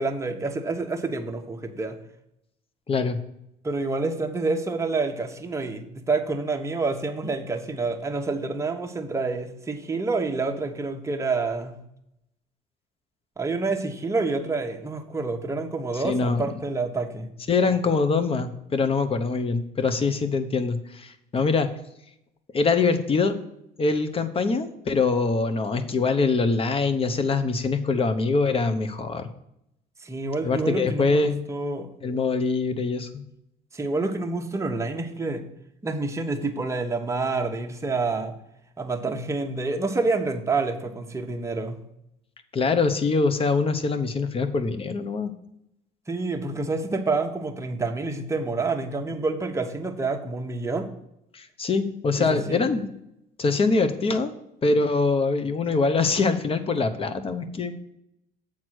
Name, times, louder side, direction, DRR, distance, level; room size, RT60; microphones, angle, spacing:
voice 1, 0.0-2.0 3.6-11.8 13.4-17.3 30.0-31.9 33.7-35.4 35.8-38.3 38.8-41.8 46.1-50.9 52.2-52.6, right 3 dB, 15° right, 4 dB, 1.1 m, -28 dB
voice 2, 2.9-3.2 15.9-16.6 17.5-21.7 22.5-23.4 23.8-29.3 30.4-31.4 32.0-33.1 42.5-45.3 51.3-52.9 53.4-54.3 54.6-57.7, left 4 dB, 35° left, 10 dB, 1.0 m, -24 dB
7.5 x 4.6 x 6.3 m, 0.81 s
cardioid pair, 110°, 17 cm